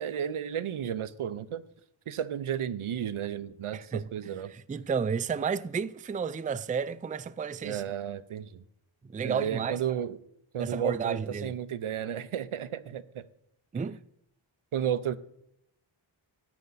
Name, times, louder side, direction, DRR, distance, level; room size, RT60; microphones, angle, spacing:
voice 1, 0.0-1.6 2.1-4.5 7.6-8.6 9.2-10.2 10.5-13.2 14.7-15.2, right 9 dB, 85° right, 0.7 m, -33 dB
voice 2, 3.7-4.1 4.5-7.8 9.1-9.8 10.6-11.5 13.7-14.0, right 6 dB, 20° right, 0.3 m, -32 dB
10.5 x 8.5 x 4.0 m
wide cardioid pair, 55°, 49 cm